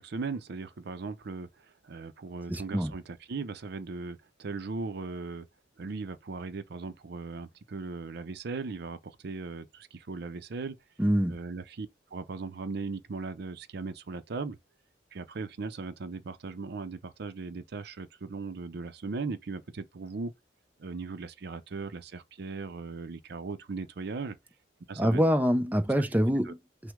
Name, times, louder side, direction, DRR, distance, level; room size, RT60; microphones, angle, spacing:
voice 1, 0.0-5.5 5.8-10.8 11.3-14.6 15.1-20.3 20.8-24.4 24.9-25.2 26.4-26.5, right 4 dB, 60° right, 0.5 m, -38 dB
voice 2, 2.5-2.9 11.0-11.4 25.0-26.9, equal, 10° right, 0.5 m, -26 dB
6.0 x 2.1 x 3.5 m
head